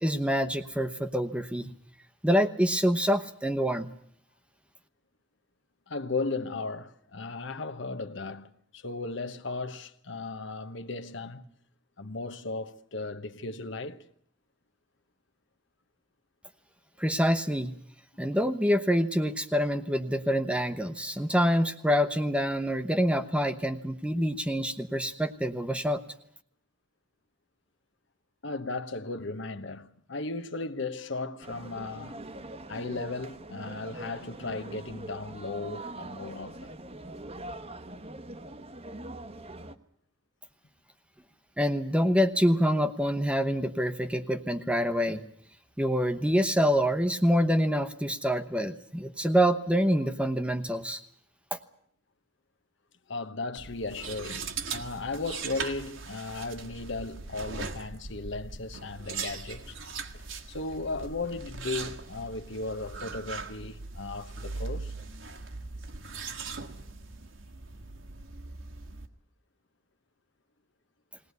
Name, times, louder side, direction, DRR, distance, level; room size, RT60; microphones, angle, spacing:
voice 1, 0.0-1.7 2.2-3.9 17.0-17.7 18.2-26.0 41.6-45.2 45.8-51.0 51.5-51.6, equal, 5° right, 0.9 m, -26 dB
voice 2, 5.9-11.5 12.0-14.1 28.4-32.2 32.7-36.7 53.1-59.8 60.5-64.9, left 3 dB, 65° left, 1.1 m, -36 dB
sound 1, 31.4-39.8, right 1 dB, 30° right, 1.1 m, -43 dB
sound 2, 53.6-69.1, right 4 dB, 70° right, 1.7 m, -40 dB
20.5 x 18.5 x 9.5 m
head